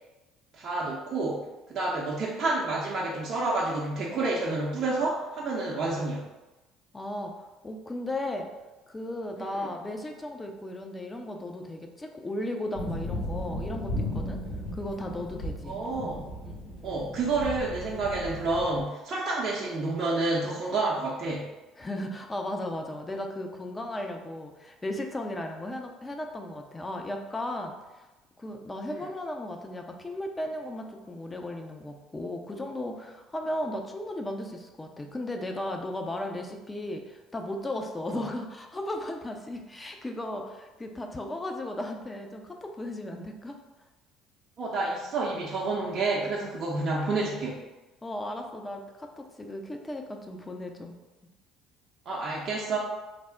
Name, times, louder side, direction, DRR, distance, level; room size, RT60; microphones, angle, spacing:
voice 1, 0.6-1.4 1.7-6.2 9.4-9.7 15.6-16.3 16.8-21.5 28.9-29.1 38.1-38.2 44.6-47.6 52.1-52.8, right 3 dB, 50° right, -4 dB, 0.5 m, -29 dB
voice 2, 6.9-8.5 8.9-14.4 14.7-15.8 16.4-16.6 21.8-28.1 28.4-43.6 48.0-50.9, left 1 dB, 20° left, 3 dB, 0.5 m, -36 dB
sound 1, 12.7-18.8, left 1 dB, 75° left, 1.3 m, -35 dB
3.3 x 2.0 x 3.7 m, 1.1 s
hypercardioid pair, 55°, 0 cm